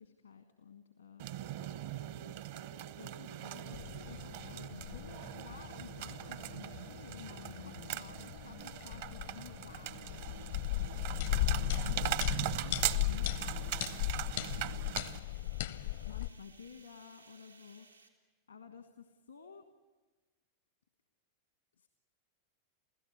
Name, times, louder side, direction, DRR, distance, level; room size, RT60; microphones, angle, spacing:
voice 1, 0.0-1.7 2.9-10.3 10.6-14.4 16.0-17.9 18.5-19.7 21.8-21.9, left 6 dB, 75° left, 7 dB, 1.4 m, -53 dB
sound 1, 1.2-15.2, right 13 dB, 55° right, 0.7 m, -40 dB
sound 2, 3.7-16.3, left 16 dB, 60° left, 0.7 m, -37 dB
sound 3, 10.1-18.1, right 4 dB, 85° right, 3.3 m, -62 dB
28.5 x 16.5 x 9.6 m, 1.3 s
figure-of-eight pair, 90°, 0 cm